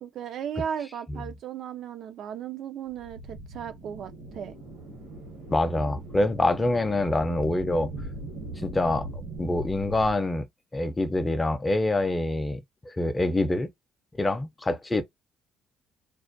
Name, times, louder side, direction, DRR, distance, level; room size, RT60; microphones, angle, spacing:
voice 1, 0.0-4.6, right 8 dB, 65° right, 0.3 m, -36 dB
sound 1, 2.9-10.1, right 2 dB, 85° right, 1.0 m, -40 dB
voice 2, 5.5-7.9 8.6-9.1 9.4-10.4 10.7-12.6 12.9-13.7 14.2-15.0, left 2 dB, 20° left, 0.4 m, -25 dB
2.3 x 2.1 x 2.5 m
cardioid pair, 95°, 0 cm